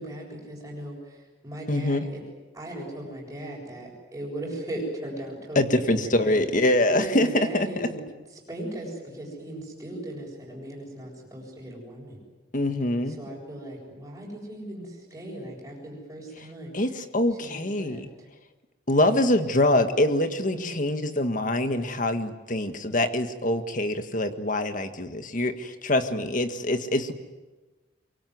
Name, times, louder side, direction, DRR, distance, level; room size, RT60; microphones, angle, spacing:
voice 1, 0.0-2.2 2.5-6.4 6.9-8.0 8.3-12.2 13.1-16.8 17.4-18.3 20.5-20.8, right 1 dB, 15° right, -7 dB, 7.4 m, -38 dB
voice 2, 1.7-2.0 5.5-7.3 7.5-7.7 12.5-13.2 16.7-18.0 18.9-27.1, left 1 dB, 45° left, 8 dB, 1.7 m, -24 dB
23.5 x 23.5 x 9.5 m, 1.2 s
head